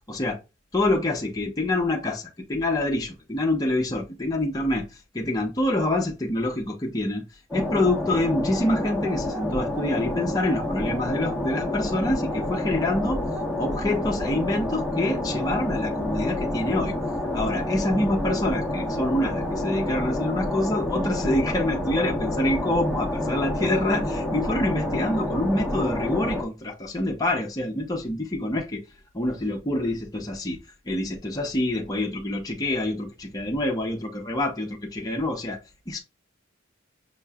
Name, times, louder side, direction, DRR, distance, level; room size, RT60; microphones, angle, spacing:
voice 1, 0.1-0.4 0.7-4.8 5.1-7.2 7.5-13.2 13.6-16.9 17.3-28.8 29.1-30.6 30.9-35.6 35.9-36.0, left 1 dB, 20° left, 0.6 m, -26 dB
sound 1, 7.5-26.4, left 1 dB, 5° right, 0.9 m, -28 dB
5.6 x 2.9 x 2.2 m
head